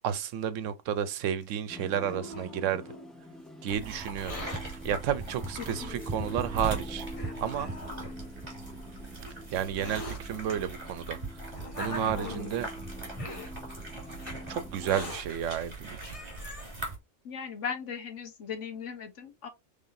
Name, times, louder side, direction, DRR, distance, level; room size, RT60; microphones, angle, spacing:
voice 1, 0.0-2.8 3.6-7.1 7.4-7.7 9.5-11.5 11.8-12.7 14.5-16.1, right 9 dB, 80° right, 1.0 m, -32 dB
Hiss, 1.4-3.1 4.0-4.6 5.6-5.7 6.5-6.6 7.1-8.1 9.0-10.2 11.0-12.5 13.1-13.5 14.2-14.3 14.8-15.2 15.7-15.8 16.0-16.7, left 2 dB, 30° left, 1.1 m, -42 dB
sound 1, 1.7-15.1, equal, ahead, 0.3 m, -46 dB
sound 2, 3.7-17.0, right 2 dB, 30° right, 2.3 m, -40 dB
voice 2, 5.6-6.2 17.2-19.5, left 7 dB, 70° left, 1.4 m, -38 dB
5.5 x 3.4 x 2.6 m
omnidirectional pair, 1.3 m